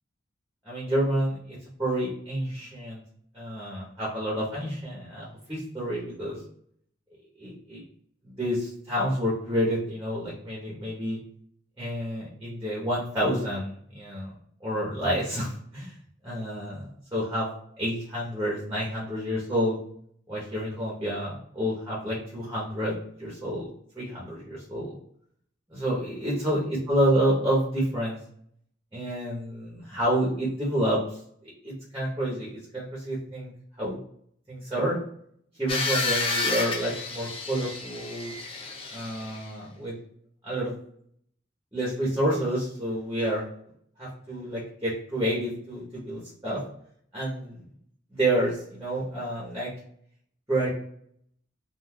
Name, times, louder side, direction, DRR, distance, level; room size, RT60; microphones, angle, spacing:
voice 1, 0.7-3.0 3.3-6.4 7.4-7.8 8.4-11.2 11.8-14.3 14.6-15.9 16.2-16.9 17.1-17.5 17.8-19.8 20.3-22.9 23.2-23.7 24.0-24.9 25.7-26.6 26.9-28.2 28.9-31.2 31.4-33.5 33.8-34.0 34.5-35.0 35.6-38.3 38.9-39.9 40.4-40.7 41.7-43.4 44.0-46.6 47.1-47.6 48.1-49.7 50.5-50.7, right 1 dB, 15° right, -5 dB, 0.8 m, -29 dB
Industrial grinder, 35.7-39.5, left 3 dB, 30° left, 0.4 m, -30 dB
2.5 x 2.3 x 3.5 m, 0.66 s
head